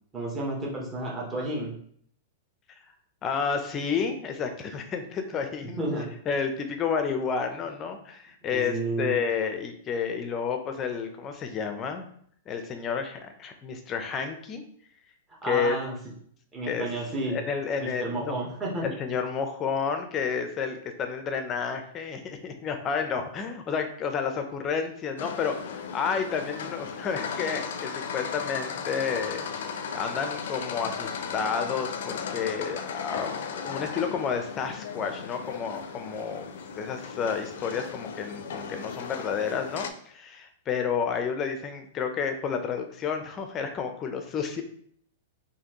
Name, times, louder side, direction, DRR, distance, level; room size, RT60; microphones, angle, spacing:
voice 1, 0.1-1.7 5.8-6.1 8.5-9.2 15.4-15.9 16.5-17.4 17.8-18.9, right 2 dB, 15° right, -3 dB, 1.3 m, -31 dB
voice 2, 3.2-5.8 6.3-12.0 12.5-14.6 15.5-15.8 16.6-16.9 17.3-18.4 18.8-29.6 29.9-36.5 36.8-44.6, left 6 dB, 25° left, 6 dB, 0.6 m, -30 dB
sound 1, 25.2-39.9, left 6 dB, 75° left, 0.5 m, -36 dB
4.1 x 2.7 x 2.9 m, 0.63 s
hypercardioid pair, 140°, 0 cm